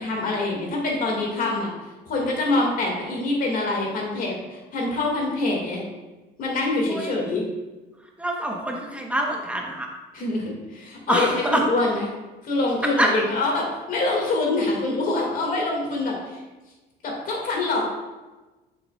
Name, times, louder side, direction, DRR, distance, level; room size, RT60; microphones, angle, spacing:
voice 1, 0.0-1.7 2.1-5.8 6.4-7.4 10.1-12.1 12.4-16.2 17.0-17.8, left 2 dB, 55° left, -1 dB, 2.0 m, -25 dB
voice 2, 8.2-9.9 11.1-11.6 13.0-13.1, right 1 dB, 5° right, 0 dB, 0.9 m, -25 dB
7.3 x 6.6 x 2.3 m, 1.2 s
cardioid pair, 110°, 17 cm